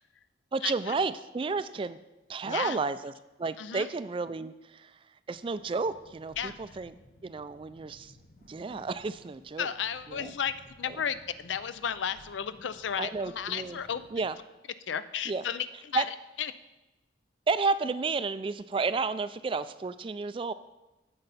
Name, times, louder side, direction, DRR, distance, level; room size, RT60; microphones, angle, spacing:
voice 1, 0.5-2.0 2.3-3.1 3.4-4.9 5.3-6.9 7.2-8.1 8.5-9.7 10.1-10.3 10.9-11.0 13.0-13.8 14.1-14.4 15.3-15.4 15.9-16.1 17.5-20.5, right 4 dB, 30° right, 14 dB, 0.3 m, -31 dB
voice 2, 2.4-2.8 3.6-3.9 6.4-6.6 9.6-10.5 10.8-14.2 14.9-16.0 16.4-16.5, left 8 dB, 85° left, 13 dB, 0.5 m, -33 dB
sound 1, 5.3-14.4, left 1 dB, 50° left, 0.8 m, -57 dB
15.5 x 5.4 x 4.1 m, 1.0 s
head